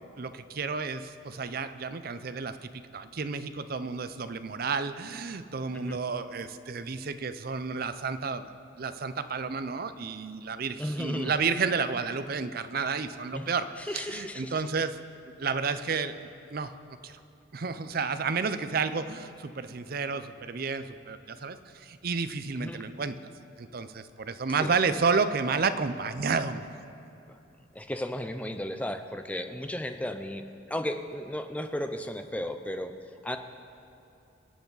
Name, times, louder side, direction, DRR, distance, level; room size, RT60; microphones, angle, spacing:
voice 1, 0.2-8.5 8.8-15.0 15.4-17.2 17.5-23.2 23.6-26.7, right 5 dB, 50° right, 12 dB, 0.5 m, -31 dB
voice 2, 10.8-11.3 13.3-13.5 13.8-14.6 22.6-22.8 24.6-24.7 27.7-30.4 30.7-32.9 33.2-33.4, left 1 dB, 5° left, 7 dB, 0.5 m, -34 dB
24.0 x 8.4 x 4.0 m, 2.7 s
head